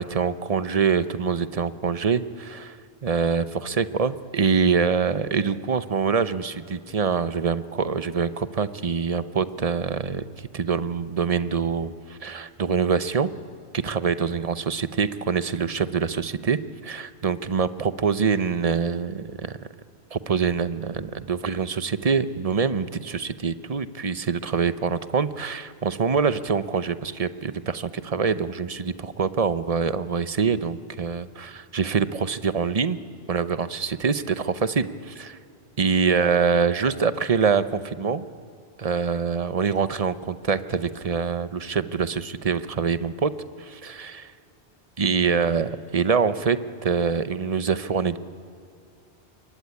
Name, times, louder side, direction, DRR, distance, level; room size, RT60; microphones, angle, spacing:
voice 1, 0.0-2.8 3.0-10.2 10.5-13.3 13.7-19.5 20.1-33.0 33.3-35.4 35.8-38.3 38.8-43.3 43.6-44.3 45.0-48.2, right 5 dB, 40° right, 13 dB, 0.8 m, -25 dB
25.5 x 22.5 x 9.6 m, 2.4 s
omnidirectional pair, 1.1 m